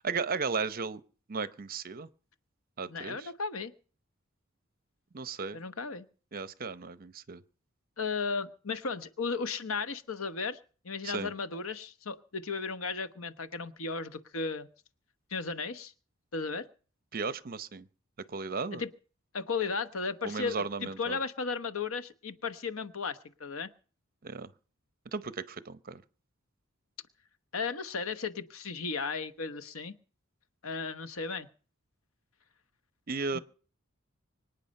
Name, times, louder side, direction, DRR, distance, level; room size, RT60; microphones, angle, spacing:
voice 1, 0.0-1.0 1.3-2.1 2.8-3.3 5.1-5.6 6.3-7.4 11.0-11.3 17.1-17.9 18.3-18.8 20.2-21.2 24.2-24.5 25.1-26.0 33.1-33.4, right 4 dB, 45° right, 0.7 m, -35 dB
voice 2, 2.9-3.7 5.5-6.1 8.0-10.6 10.8-14.7 15.3-15.9 16.3-16.7 18.7-18.9 19.3-23.7 27.5-29.9 30.6-31.5 33.3-33.4, left 4 dB, 90° left, 1.0 m, -35 dB
24.5 x 9.1 x 5.4 m
head